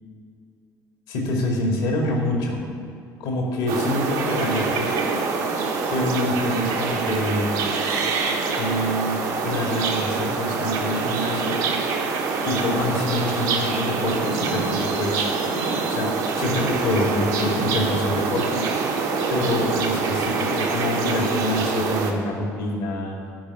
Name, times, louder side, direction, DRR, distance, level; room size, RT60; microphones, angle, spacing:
voice 1, 1.1-2.6 3.2-5.2 5.9-7.6 8.5-11.6 12.5-15.3 15.9-18.7 19.3-23.2, left 1 dB, 60° left, 0 dB, 2.3 m, -26 dB
sound 1, 3.7-22.1, right 4 dB, 60° right, 1.5 m, -25 dB
11.5 x 6.0 x 8.8 m, 2.4 s
figure-of-eight pair, 55°, 9 cm